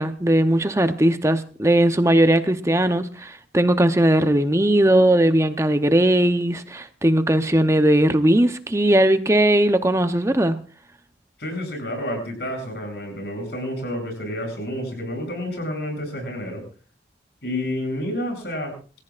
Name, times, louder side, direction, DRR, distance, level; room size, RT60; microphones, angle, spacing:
voice 1, 0.0-10.6, right 1 dB, 15° right, 0.8 m, -18 dB
voice 2, 11.4-16.6 17.4-18.7, left 1 dB, 60° left, 7.7 m, -29 dB
27.5 x 15.0 x 2.5 m
head